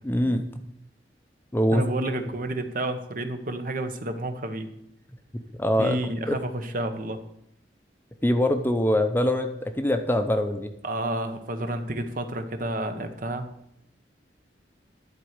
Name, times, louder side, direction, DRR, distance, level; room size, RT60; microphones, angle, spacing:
voice 1, 0.0-0.5 1.5-1.9 5.3-6.0 6.3-6.4 8.2-10.7, left 1 dB, 10° left, 7 dB, 0.7 m, -23 dB
voice 2, 1.7-4.7 5.8-7.2 10.8-13.5, right 1 dB, 50° right, 8 dB, 1.0 m, -30 dB
11.0 x 4.6 x 8.1 m, 0.75 s
head